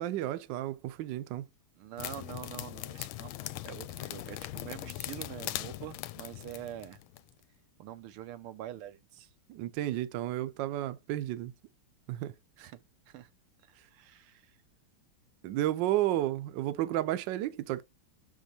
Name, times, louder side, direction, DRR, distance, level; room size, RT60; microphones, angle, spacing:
voice 1, 0.0-1.4 9.5-11.5 12.1-12.3 15.4-17.8, right 14 dB, 70° right, 1.2 m, -32 dB
voice 2, 1.8-7.0 7.8-9.3 12.6-13.3 13.9-14.4, right 12 dB, 90° right, 1.7 m, -45 dB
sound 1, 2.0-7.3, left 15 dB, 80° left, 1.4 m, -40 dB
6.3 x 5.1 x 4.3 m
omnidirectional pair, 2.4 m